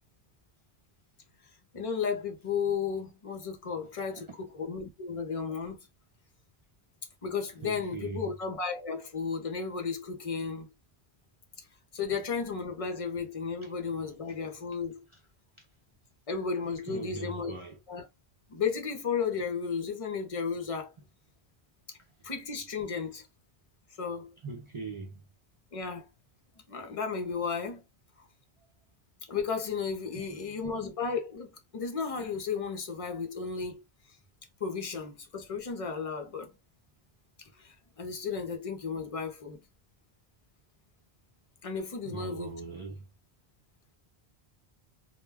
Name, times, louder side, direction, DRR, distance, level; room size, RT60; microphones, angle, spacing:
voice 1, 1.7-5.8 7.2-10.7 11.9-15.0 16.3-17.5 17.9-18.1 18.5-20.9 21.9-22.0 22.2-23.3 24.0-24.3 25.7-26.1 26.7-27.8 28.2-28.3 29.3-33.8 34.1-34.2 34.6-36.5 37.6-39.6 41.6-42.5, left 5 dB, 40° left, 0.6 m, -34 dB
voice 2, 7.6-8.3 13.6-13.7 15.6-15.7 16.9-17.8 24.4-25.2 30.1-30.7 42.0-43.1, right 3 dB, 40° right, 0.4 m, -41 dB
2.2 x 2.1 x 3.3 m
omnidirectional pair, 1.1 m